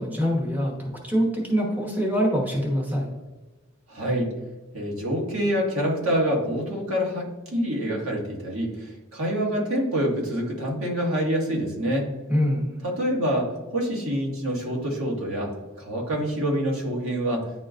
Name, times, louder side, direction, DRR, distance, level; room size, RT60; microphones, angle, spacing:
voice 1, 0.0-3.1 12.3-12.7, equal, 10° right, -2 dB, 1.1 m, -24 dB
voice 2, 3.9-4.3 4.7-12.1 12.8-17.5, equal, 85° right, -2 dB, 1.8 m, -26 dB
9.8 x 3.9 x 2.5 m, 1.2 s
head